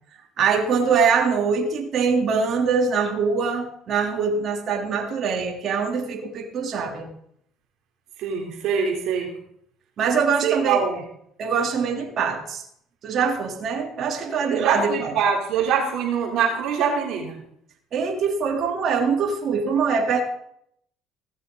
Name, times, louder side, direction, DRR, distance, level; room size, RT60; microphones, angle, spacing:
voice 1, 0.4-7.1 10.0-10.8 11.4-12.6 13.0-15.1 17.9-20.2, right 5 dB, 50° right, 0 dB, 3.2 m, -23 dB
voice 2, 8.2-9.3 10.4-11.0 14.5-17.4, right 6 dB, 65° right, 1 dB, 3.2 m, -24 dB
17.0 x 12.5 x 3.9 m, 0.70 s
supercardioid pair, 75°, 0 cm